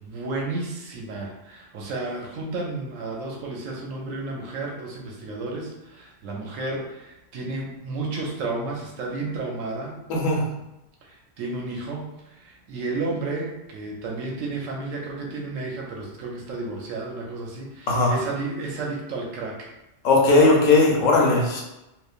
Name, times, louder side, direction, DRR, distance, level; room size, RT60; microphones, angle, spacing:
voice 1, 0.0-9.9 11.0-19.7, right 3 dB, 90° right, -1 dB, 1.0 m, -32 dB
voice 2, 10.1-10.4 17.9-18.1 20.0-21.6, left 3 dB, 90° left, -1 dB, 1.0 m, -18 dB
3.0 x 2.1 x 2.4 m, 0.94 s
omnidirectional pair, 1.3 m